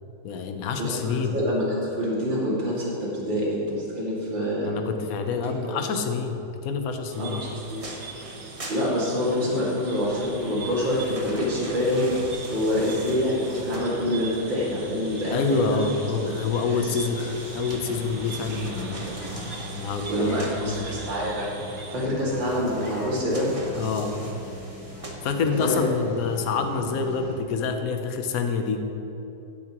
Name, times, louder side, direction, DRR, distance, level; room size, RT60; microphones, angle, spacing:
voice 1, 0.2-1.3 4.6-7.4 15.3-17.2 17.5-19.1 19.7-21.0 23.8-24.2 25.2-28.8, left 5 dB, 55° left, 6 dB, 1.1 m, -27 dB
voice 2, 0.8-4.7 5.4-5.7 7.2-7.9 8.7-12.1 12.5-15.9 16.4-16.8 19.5-19.7 20.1-21.6 21.9-23.5 25.6-25.8, equal, 70° right, -6 dB, 3.1 m, -26 dB
sound 1, 7.1-22.1, right 3 dB, 45° right, 1.1 m, -41 dB
sound 2, 7.7-9.6 10.4-14.4 16.8-20.7 22.2-25.7 26.2-26.3, right 1 dB, 25° right, 0.7 m, -41 dB
sound 3, 9.9-27.4, left 2 dB, 85° left, 2.1 m, -42 dB
15.5 x 9.8 x 3.0 m, 3.0 s
omnidirectional pair, 2.1 m